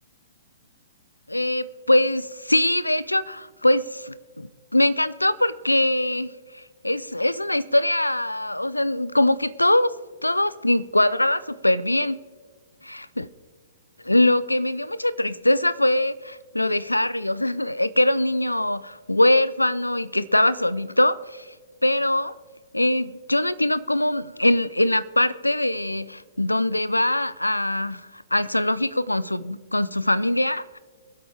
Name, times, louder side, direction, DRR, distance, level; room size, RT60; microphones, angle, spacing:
voice 1, 1.3-9.9 10.2-12.2 12.8-13.3 14.0-21.5 21.8-22.3 22.7-30.8, left 1 dB, 90° left, 0.5 m, -22 dB
23.0 x 8.1 x 3.5 m
figure-of-eight pair, 120°, 0 cm